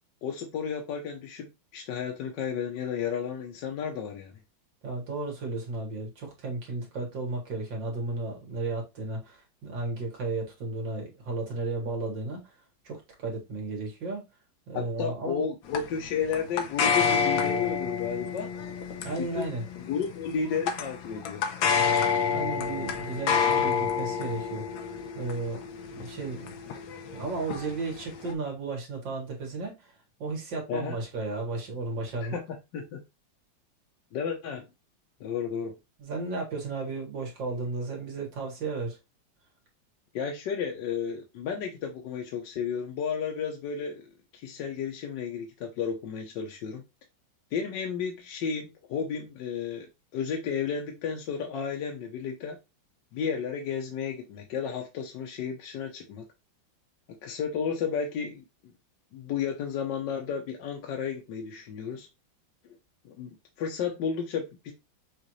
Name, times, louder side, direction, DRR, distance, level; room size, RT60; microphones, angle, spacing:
voice 1, 0.2-4.3 14.7-18.5 19.3-21.5 30.7-31.0 32.2-33.0 34.1-34.7 35.2-35.8 40.1-46.8 47.5-49.9 50.1-52.6 53.1-56.2 57.2-58.7 59.1-62.1 63.0-64.7, left 6 dB, 70° left, 1.4 m, -33 dB
voice 2, 4.8-12.4 12.8-14.2 14.7-15.5 19.0-19.6 22.3-24.9 25.1-25.6 25.9-26.6 27.1-29.9 30.2-32.4 36.0-39.0, right 3 dB, 70° right, 2.3 m, -34 dB
sound 1, 15.7-28.3, left 6 dB, 90° left, 1.6 m, -29 dB
6.5 x 2.5 x 3.1 m
omnidirectional pair, 2.1 m